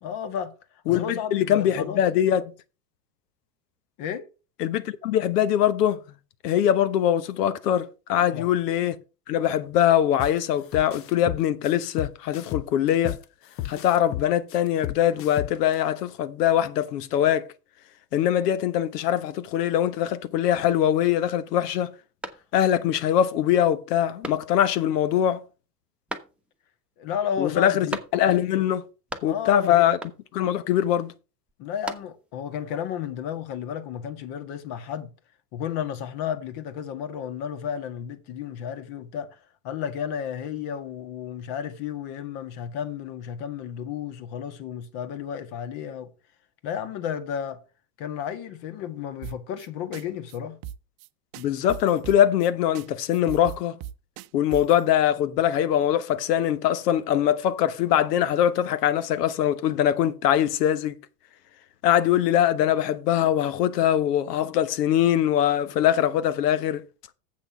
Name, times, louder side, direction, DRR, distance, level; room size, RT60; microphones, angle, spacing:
voice 1, 0.0-0.5 0.9-2.0 4.0-4.3 8.1-8.5 22.3-22.4 27.0-28.0 29.2-29.9 31.6-35.1 35.5-39.4 39.6-46.1 46.6-47.6 48.0-50.6, left 8 dB, 50° left, 1.7 m, -32 dB
voice 2, 0.9-2.5 4.6-6.0 6.4-9.0 9.3-13.2 13.6-17.5 18.1-21.9 22.5-25.4 27.4-27.9 28.1-28.8 29.2-30.0 30.3-31.1 51.4-53.8 54.3-61.0 61.8-66.8, left 10 dB, 70° left, 1.2 m, -22 dB
sound 1, 10.2-10.4 10.7-13.2 13.6-15.7, left 13 dB, 30° left, 0.5 m, -33 dB
sound 2, 22.2-22.9 23.3-23.4 24.2-24.8 26.1-26.7 27.9-28.5 28.8-29.6 30.0-30.5 31.5-32.4, right 1 dB, ahead, 1.1 m, -38 dB
sound 3, 49.2-49.7 49.9-50.0 50.3-50.4 50.6-51.1 51.3-52.5 52.7-52.9 53.1-54.8, right 11 dB, 45° right, 0.7 m, -38 dB
7.7 x 6.2 x 5.9 m
hypercardioid pair, 110°, 49 cm